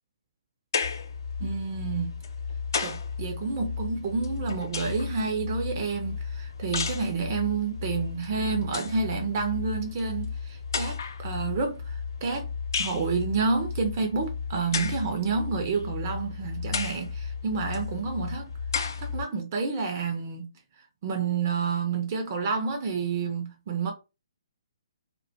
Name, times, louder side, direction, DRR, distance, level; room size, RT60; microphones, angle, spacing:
sound 1, 0.7-1.1 2.2-3.1 4.2-5.1 6.7-7.1 8.2-8.3 8.6-9.0 10.0-10.1 10.7-11.2 12.7-13.1 14.7-15.1 15.7-15.8 16.7-17.1 17.7-17.8 18.7-19.1, left 5 dB, 50° left, 0.4 m, -31 dB
sound 2, 0.8-19.3, left 6 dB, 70° left, 0.8 m, -35 dB
voice 1, 1.4-2.1 2.8-12.5 12.7-18.5 19.0-20.4 21.0-23.9, right 5 dB, 35° right, 0.4 m, -29 dB
2.3 x 2.1 x 2.6 m
figure-of-eight pair, 130°, 2 cm